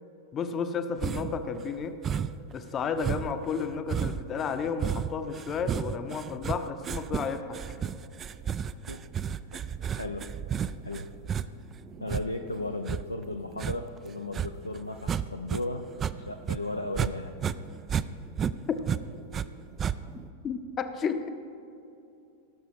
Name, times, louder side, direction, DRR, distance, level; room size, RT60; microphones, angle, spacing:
voice 1, 0.3-2.0 2.5-7.6 18.7-18.9 20.4-21.3, left 5 dB, 25° left, 9 dB, 0.7 m, -32 dB
sound 1, 1.0-1.4 2.0-2.5 3.0-15.6 15.9-17.1 17.4-19.5 19.8-20.3, right 8 dB, 25° right, 0.3 m, -32 dB
voice 2, 9.9-10.5 10.8-11.1 12.0-15.9 16.1-17.4, left 2 dB, 85° left, 5 dB, 0.5 m, -35 dB
sound 2, 11.0-11.4 12.3-13.3 17.5-17.8 18.4-19.2, right 3 dB, 70° right, 0.7 m, -51 dB
16.5 x 6.7 x 4.8 m, 2.7 s
figure-of-eight pair, 90°, 0 cm